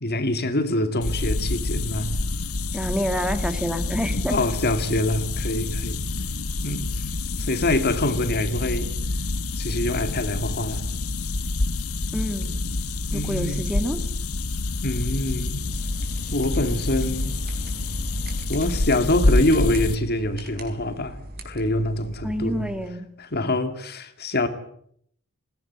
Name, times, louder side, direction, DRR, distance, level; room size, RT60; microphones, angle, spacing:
voice 1, 0.0-2.2 4.3-6.0 6.6-6.9 7.4-8.9 9.6-10.8 13.1-13.6 14.8-15.7 16.3-17.3 18.5-21.2 21.4-22.7 23.2-24.5, left 1 dB, 45° left, 2.4 m, -25 dB
sound 1, 1.0-19.9, left 2 dB, 70° left, 1.2 m, -27 dB
voice 2, 2.7-4.4 12.1-12.6 13.1-14.0 22.2-23.1, equal, 5° right, 1.9 m, -28 dB
sound 2, 15.6-22.9, right 1 dB, 45° right, 4.6 m, -38 dB
21.5 x 17.0 x 9.7 m
head